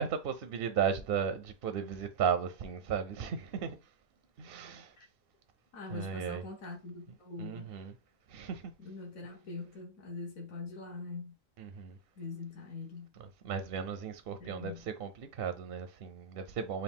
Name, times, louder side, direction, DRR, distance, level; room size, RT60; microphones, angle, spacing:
voice 1, 0.0-3.8 4.4-5.0 5.9-6.4 7.4-7.9 8.3-8.7 11.6-12.0 13.4-16.8, right 7 dB, 60° right, 0.6 m, -35 dB
voice 2, 5.7-7.7 8.8-11.3 12.2-13.1 14.4-14.8, left 3 dB, 90° left, 1.5 m, -43 dB
3.8 x 2.6 x 3.5 m
omnidirectional pair, 1.4 m